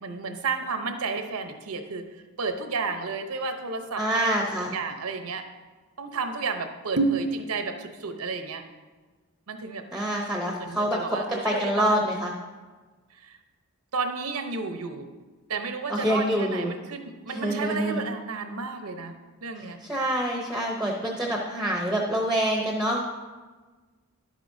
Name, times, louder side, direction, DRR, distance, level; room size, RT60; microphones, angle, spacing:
voice 1, 0.0-2.0 2.4-4.3 4.6-5.4 6.0-8.6 9.5-9.8 10.6-12.0 13.2-13.3 13.9-15.1 15.5-19.1 19.4-19.8, right 4 dB, 80° right, 6 dB, 0.8 m, -31 dB
voice 2, 4.0-4.7 9.9-12.3 15.9-16.7 17.3-18.0 19.6-23.0, equal, ahead, 0 dB, 0.7 m, -26 dB
11.0 x 8.1 x 2.7 m, 1.3 s
head